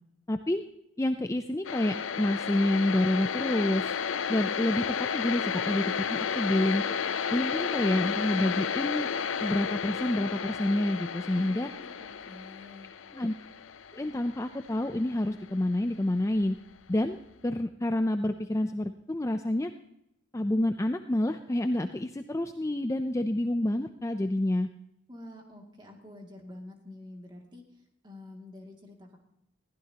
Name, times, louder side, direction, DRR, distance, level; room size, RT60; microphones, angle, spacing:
voice 1, 0.3-0.6 1.0-4.0 4.3-9.1 9.4-11.7 13.1-13.3 13.9-16.6 16.9-17.2 17.4-19.7 20.3-24.7, left 1 dB, 15° left, 8 dB, 0.4 m, -28 dB
sound 1, 1.6-15.5, left 7 dB, 75° left, 0.6 m, -33 dB
voice 2, 11.3-12.9 25.1-29.2, left 1 dB, 20° right, 1 dB, 2.4 m, -48 dB
21.0 x 15.0 x 2.9 m, 0.81 s
head